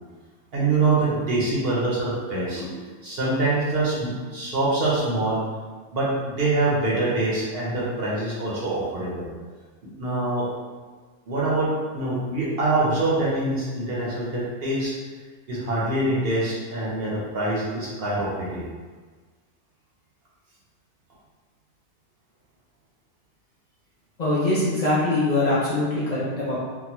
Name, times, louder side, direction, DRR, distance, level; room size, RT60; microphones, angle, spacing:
voice 1, 0.5-2.8 3.0-5.4 5.9-9.3 9.8-10.5 11.3-15.0 15.5-18.7, right 2 dB, 55° right, -6 dB, 1.0 m, -25 dB
voice 2, 24.2-26.5, left 2 dB, 45° left, -9 dB, 0.7 m, -23 dB
3.7 x 2.2 x 2.9 m, 1.4 s
omnidirectional pair, 1.3 m